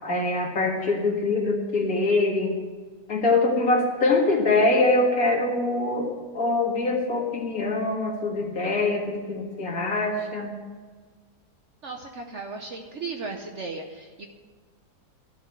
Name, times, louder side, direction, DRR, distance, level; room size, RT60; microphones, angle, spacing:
voice 1, 0.0-2.6 3.1-10.5, left 2 dB, 55° left, -1 dB, 2.3 m, -24 dB
voice 2, 11.8-14.3, right 4 dB, 55° right, 3 dB, 1.0 m, -36 dB
13.5 x 4.6 x 8.6 m, 1.5 s
omnidirectional pair, 1.8 m